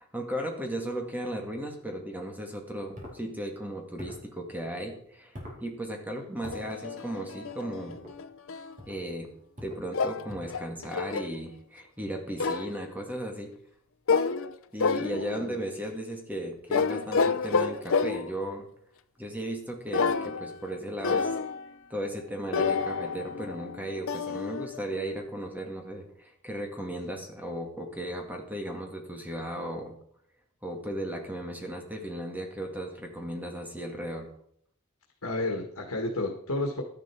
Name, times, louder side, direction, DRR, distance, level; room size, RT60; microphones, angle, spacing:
voice 1, 0.0-8.0 8.9-9.3 9.6-13.5 14.7-18.7 19.2-21.3 21.9-29.9 30.6-34.3, right 1 dB, 10° right, 2 dB, 2.1 m, -36 dB
sound 1, 2.9-3.2 4.0-4.3 5.3-5.6 6.4-6.7 7.9-8.2 8.8-9.0 9.5-9.9 10.3-10.6, equal, 35° right, 4.3 m, -43 dB
sound 2, 6.5-8.7 9.9-11.4 12.4-12.8 14.1-14.5 14.8-15.5 16.7-18.4 19.9-20.7 21.0-21.7 22.5-25.2, left 5 dB, 65° left, 0.6 m, -29 dB
voice 2, 15.1-15.6 35.2-36.8, left 2 dB, 85° left, 1 dB, 1.7 m, -32 dB
12.5 x 10.5 x 4.6 m, 0.65 s
head